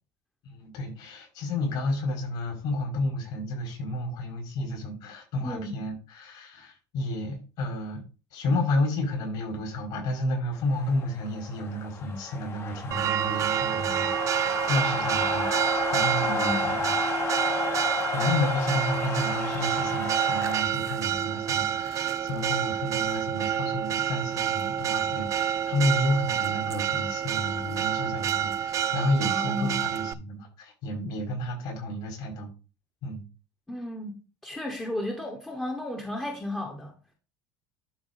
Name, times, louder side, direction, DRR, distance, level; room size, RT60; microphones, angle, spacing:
voice 1, 0.4-8.0 8.3-16.5 16.8-17.3 18.1-32.5 33.0-33.2, left 1 dB, 55° left, 5.3 m, -31 dB
sound 1, 10.7-20.6, left 5 dB, 25° left, 1.2 m, -32 dB
Church bell, 12.9-30.1, right 10 dB, 35° right, 0.5 m, -28 dB
voice 2, 16.2-16.7 29.2-29.8 33.7-36.9, left 1 dB, 5° left, 1.2 m, -33 dB
11.5 x 4.2 x 4.1 m
cardioid pair, 140°, 9 cm